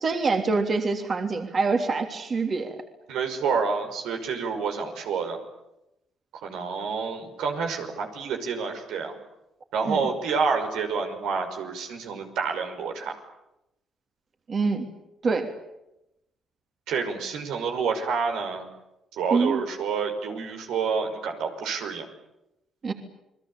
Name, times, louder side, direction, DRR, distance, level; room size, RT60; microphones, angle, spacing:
voice 1, 0.0-2.8 9.9-10.1 14.5-14.9 15.2-15.5 19.3-19.6 22.8-22.9, right 4 dB, 45° right, 4 dB, 3.3 m, -25 dB
voice 2, 3.1-5.4 6.4-9.2 9.7-13.1 16.9-18.7 19.1-22.1, right 5 dB, 90° right, 4 dB, 5.7 m, -28 dB
30.0 x 21.5 x 8.8 m, 0.88 s
cardioid pair, 90°, 0 cm